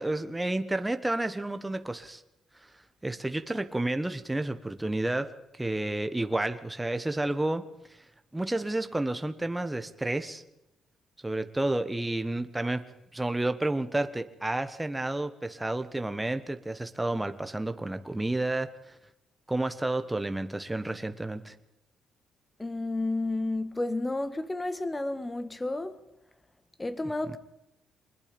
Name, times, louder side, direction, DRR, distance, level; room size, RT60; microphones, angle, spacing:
voice 1, 0.0-2.2 3.0-7.6 8.3-10.4 11.2-12.9 13.1-19.0 19.5-21.5, right 2 dB, 10° right, 1.3 m, -30 dB
voice 2, 22.6-26.0 26.8-27.4, left 2 dB, 15° left, 1.8 m, -31 dB
24.5 x 21.0 x 5.3 m
cardioid pair, 90°, 0 cm